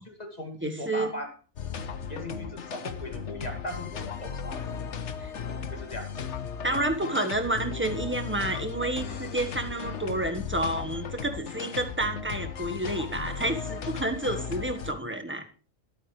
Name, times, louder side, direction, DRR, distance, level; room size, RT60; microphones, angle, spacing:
voice 1, 0.0-1.3 2.1-4.8 5.7-6.1 9.1-9.2, left 1 dB, 30° left, 4 dB, 2.5 m, -38 dB
voice 2, 0.6-1.1 5.2-5.3 6.6-15.4, right 1 dB, 10° right, 6 dB, 1.3 m, -30 dB
sound 1, 1.6-14.9, left 6 dB, 60° left, 1.2 m, -36 dB
21.5 x 8.8 x 3.3 m, 0.39 s
omnidirectional pair, 1.4 m